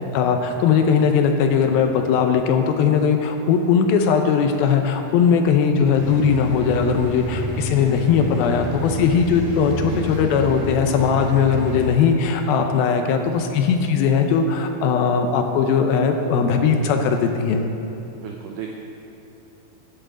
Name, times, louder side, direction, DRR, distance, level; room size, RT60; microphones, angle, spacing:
voice 1, 0.1-17.7, left 6 dB, 80° left, 5 dB, 2.4 m, -19 dB
sound 1, 5.9-11.9, equal, 35° right, 1.4 m, -30 dB
voice 2, 9.9-10.4 18.1-18.7, right 8 dB, 85° right, 1 dB, 1.8 m, -35 dB
9.9 x 7.6 x 7.5 m, 2.9 s
omnidirectional pair, 4.6 m